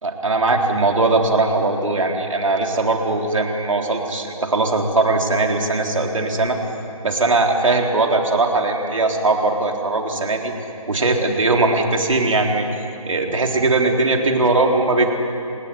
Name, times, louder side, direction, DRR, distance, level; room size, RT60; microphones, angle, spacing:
voice 1, 0.0-6.6 7.0-10.5 10.9-12.6 13.1-15.1, right 3 dB, 60° right, 2 dB, 4.0 m, -19 dB
28.5 x 18.5 x 10.0 m, 2.8 s
hypercardioid pair, 180°, 19 cm